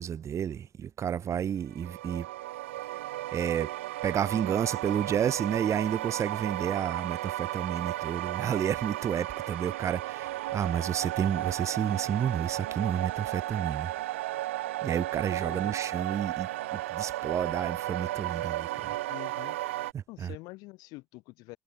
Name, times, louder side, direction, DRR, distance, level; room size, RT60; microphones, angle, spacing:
voice 1, 0.0-2.3 3.3-3.7 4.0-13.9 14.8-19.0 19.9-20.3, right 8 dB, 50° right, 1.2 m, -31 dB
sound 1, 1.7-19.9, right 16 dB, 90° right, 0.9 m, -34 dB
voice 2, 19.1-19.6 20.1-21.6, left 23 dB, 75° left, 3.5 m, -46 dB
hypercardioid pair, 60°, 7 cm